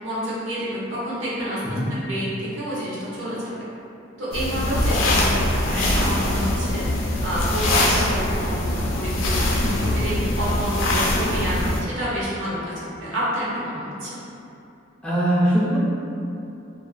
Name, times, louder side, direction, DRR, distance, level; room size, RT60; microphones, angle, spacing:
voice 1, 0.0-1.8 2.1-3.4 4.2-6.8 7.2-9.4 9.9-14.2, equal, 75° right, -8 dB, 0.7 m, -29 dB
sound 1, 4.3-11.8, left 1 dB, 90° left, 0.4 m, -22 dB
voice 2, 5.1-5.5 9.6-10.0 15.0-15.8, equal, 5° left, -9 dB, 0.4 m, -23 dB
2.3 x 2.1 x 2.5 m, 2.7 s
head